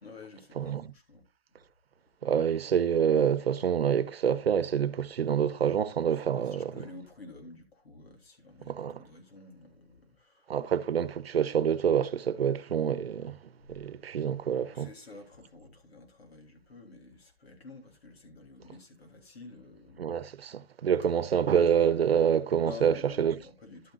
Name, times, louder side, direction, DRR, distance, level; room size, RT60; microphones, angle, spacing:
voice 1, 0.0-1.6 6.1-10.6 14.7-20.3 22.6-23.9, left 3 dB, 90° left, 3.4 m, -50 dB
voice 2, 0.6-0.9 2.2-6.7 8.7-9.0 10.5-13.4 13.7-14.9 20.0-23.4, right 8 dB, 80° right, 0.9 m, -27 dB
11.5 x 9.9 x 2.5 m
hypercardioid pair, 170°, 30 cm